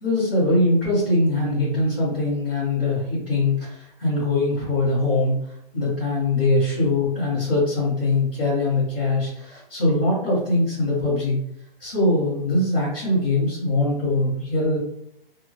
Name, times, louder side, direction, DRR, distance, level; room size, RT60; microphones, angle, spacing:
voice 1, 0.0-5.3 5.7-11.4 11.8-14.8, left 2 dB, 10° left, -12 dB, 0.4 m, -22 dB
2.5 x 2.2 x 3.0 m, 0.77 s
hypercardioid pair, 155°, 30 cm